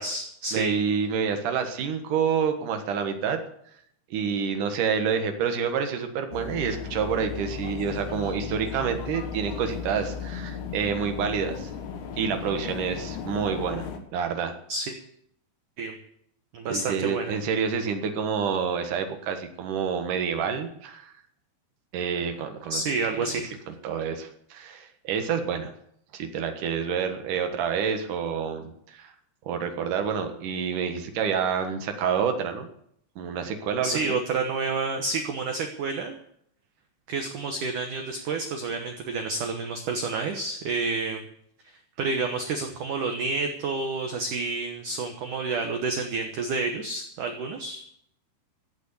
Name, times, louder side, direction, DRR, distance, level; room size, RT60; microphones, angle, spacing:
voice 1, 0.0-0.7 14.7-14.9 15.8-16.0 16.5-17.4 22.7-23.6 33.8-36.2 37.1-41.2 42.0-47.8, right 3 dB, 85° right, 5 dB, 1.8 m, -29 dB
voice 2, 0.5-3.4 4.1-11.7 12.2-14.5 16.7-21.1 21.9-22.8 23.1-25.7 26.1-29.1 29.5-32.7 33.2-34.1, right 6 dB, 65° right, 6 dB, 2.2 m, -28 dB
sound 1, 6.3-14.0, left 7 dB, 70° left, 1.9 m, -36 dB
15.0 x 8.5 x 8.3 m, 0.71 s
omnidirectional pair, 5.5 m